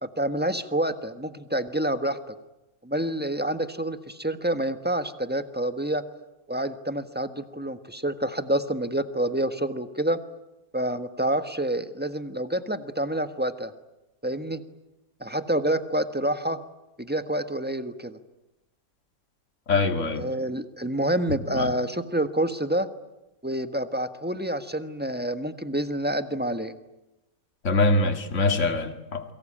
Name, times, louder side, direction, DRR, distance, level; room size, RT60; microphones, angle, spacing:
voice 1, 0.0-2.3 2.8-6.0 6.5-10.2 10.7-13.7 14.2-14.6 15.2-16.6 17.0-18.2 20.2-22.9 23.4-26.7, right 1 dB, 5° right, 1.4 m, -28 dB
voice 2, 19.7-20.3 21.5-21.7 27.6-29.2, left 3 dB, 55° left, 2.3 m, -23 dB
29.0 x 23.5 x 8.8 m
omnidirectional pair, 1.5 m